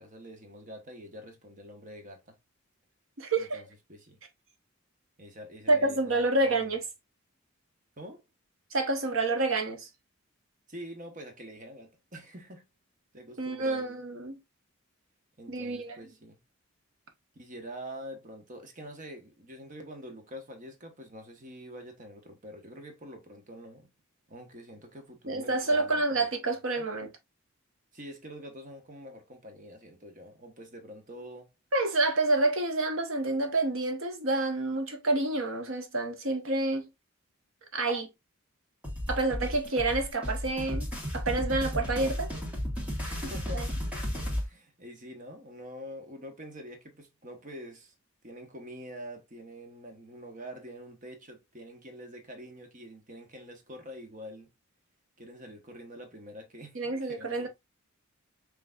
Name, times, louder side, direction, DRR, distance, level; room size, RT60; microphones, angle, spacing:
voice 1, 0.0-2.4 3.4-4.2 5.2-6.7 8.0-8.2 10.7-12.6 13.1-14.0 15.4-16.4 17.3-23.9 24.3-26.3 26.7-26.9 27.9-31.5 43.0-43.8 44.4-47.9 48.2-54.5 55.2-57.5, equal, 40° right, 1.2 m, -46 dB
voice 2, 3.2-3.6 5.7-6.8 8.7-9.9 13.4-14.4 15.5-16.0 25.3-27.1 31.7-36.9 37.7-38.1 39.1-40.9 41.1-42.3 43.0-43.1 43.5-43.7 56.7-57.5, right 2 dB, 65° right, 1.1 m, -28 dB
sound 1, 38.8-44.5, equal, 5° right, 1.8 m, -33 dB
5.7 x 3.2 x 2.4 m
head